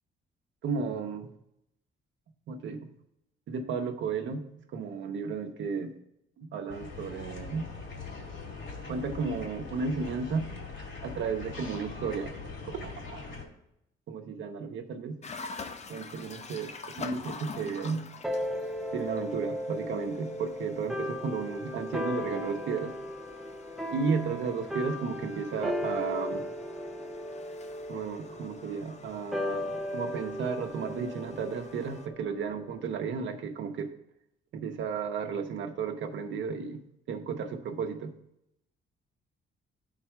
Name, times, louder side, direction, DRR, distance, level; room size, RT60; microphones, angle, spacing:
voice 1, 0.6-1.3 2.5-2.8 3.5-4.4 4.7-5.9 6.4-7.7 8.9-10.5 11.0-12.3 12.6-13.2 14.1-15.2 15.9-16.7 17.0-18.0 18.9-22.9 23.9-26.4 27.9-33.9 34.5-36.8 37.1-38.1, right 5 dB, 70° right, 4 dB, 0.9 m, -33 dB
sound 1, 6.7-13.4, left 4 dB, 65° left, 2.4 m, -42 dB
Toilet flushing and filling, 15.2-32.1, left 4 dB, 35° left, 0.7 m, -47 dB
sound 2, 18.2-33.0, left 1 dB, ahead, 0.8 m, -36 dB
11.0 x 4.1 x 4.6 m, 0.80 s
cardioid pair, 90°, 20 cm